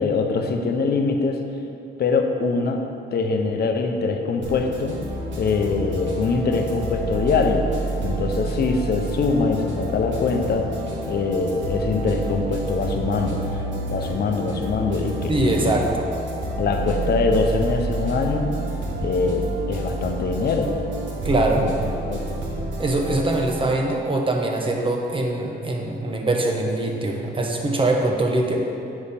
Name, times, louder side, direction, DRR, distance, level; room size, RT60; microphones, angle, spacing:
voice 1, 0.0-1.4 2.0-2.8 3.1-5.0 5.4-7.7 8.0-10.7 11.1-13.4 13.9-15.8 16.6-18.5 19.0-20.7 21.4-21.7 22.0-22.3, left 4 dB, 55° left, 4 dB, 0.8 m, -23 dB
sound 1, 4.4-23.6, right 2 dB, 70° right, 1.4 m, -29 dB
voice 2, 15.3-16.1 21.2-21.7 22.8-28.7, right 2 dB, 25° right, 1 dB, 1.0 m, -23 dB
8.3 x 5.1 x 4.3 m, 2.7 s
cardioid pair, 90°, 20 cm